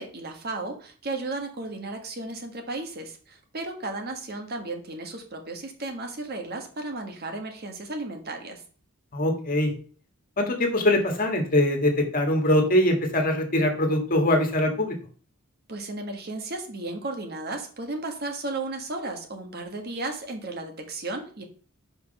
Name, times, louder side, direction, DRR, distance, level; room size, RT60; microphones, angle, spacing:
voice 1, 0.0-8.6 15.7-21.4, right 2 dB, 50° right, 4 dB, 1.4 m, -34 dB
voice 2, 9.1-9.7 10.4-15.0, left 1 dB, 45° left, 3 dB, 1.6 m, -22 dB
5.9 x 5.3 x 5.4 m, 0.42 s
head